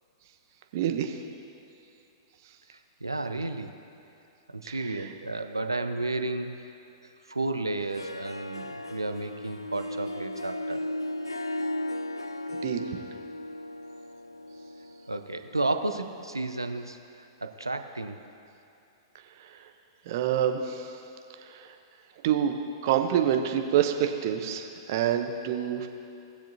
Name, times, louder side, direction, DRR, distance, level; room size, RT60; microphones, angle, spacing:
voice 1, 0.7-1.2 4.7-5.1 12.5-12.9 19.4-19.7 20.1-21.0 21.4-21.7 22.2-22.5 22.8-25.9, right 9 dB, 50° right, 5 dB, 0.8 m, -27 dB
voice 2, 2.7-3.7 4.5-6.5 7.3-10.8 15.1-18.2, right 2 dB, 90° right, 7 dB, 0.6 m, -32 dB
Harp, 7.8-16.4, left 1 dB, 90° left, 0.3 m, -36 dB
19.0 x 7.2 x 2.8 m, 2.7 s
figure-of-eight pair, 105°, 2 cm